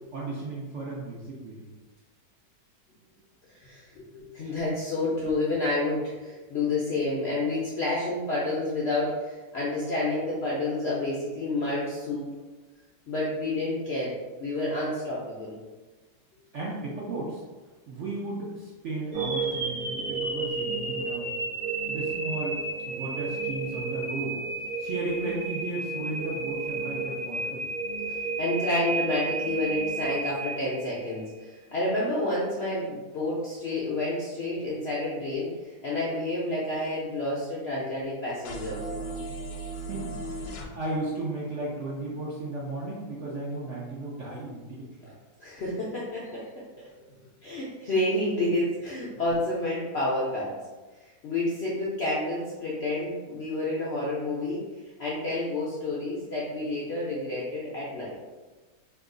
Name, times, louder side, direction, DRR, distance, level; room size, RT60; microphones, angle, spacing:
voice 1, 0.1-1.7 16.5-17.4 17.9-21.3 21.9-22.6 22.8-24.4 24.8-27.6 39.7-45.1, right 2 dB, 65° right, -5 dB, 0.7 m, -35 dB
voice 2, 3.5-12.3 13.1-14.1 14.4-15.6 28.4-38.8 45.4-46.5 46.8-46.9 47.4-50.5 51.0-54.6 55.0-58.2, left 2 dB, 65° left, -7 dB, 0.6 m, -29 dB
sound 1, 19.1-31.2, right 3 dB, 45° right, 1.1 m, -32 dB
sound 2, 38.4-40.7, right 2 dB, 80° left, 1.2 m, -36 dB
2.9 x 2.3 x 3.7 m, 1.2 s
omnidirectional pair, 1.8 m